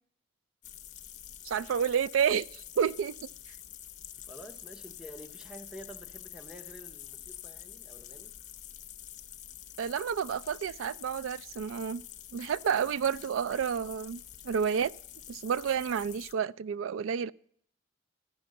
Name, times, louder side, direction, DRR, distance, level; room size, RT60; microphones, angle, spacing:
sound 1, 0.6-16.3, left 11 dB, 40° left, 0.6 m, -47 dB
voice 1, 1.4-3.2 9.8-12.1 12.3-14.9 15.3-17.3, right 7 dB, 85° right, 0.3 m, -30 dB
voice 2, 4.3-8.3, equal, 5° right, 0.8 m, -49 dB
13.0 x 5.2 x 7.5 m
head